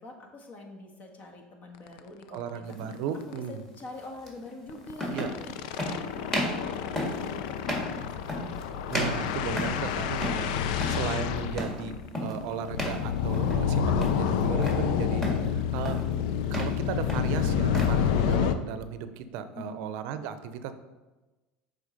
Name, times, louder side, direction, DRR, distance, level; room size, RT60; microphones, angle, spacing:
voice 1, 0.0-5.5 5.8-8.3 19.5-19.8, left 2 dB, 45° left, 2 dB, 1.6 m, -45 dB
sound 1, 1.9-2.0 2.3-2.4 2.7-2.9 3.2-3.4 4.7-18.5, left 8 dB, 80° left, 0.5 m, -28 dB
voice 2, 2.3-3.7 5.1-5.3 8.9-15.3 15.7-20.7, right 8 dB, 70° right, 11 dB, 0.6 m, -35 dB
sound 2, 2.7-2.9 4.3-4.4 4.9-5.4 5.8-6.0 6.3-6.6 7.0-7.2 7.6-7.9 8.3-8.6 8.9-9.9 10.2-10.5 10.7-11.1 11.6-11.8 12.1-12.4 12.8-13.0 13.3-13.7 14.0-14.8 15.2-15.5 15.8-16.1 16.4-16.8 17.1-18.0, equal, 10° left, 1.9 m, -32 dB
7.3 x 3.9 x 5.2 m, 1.1 s
supercardioid pair, 105°, 4 cm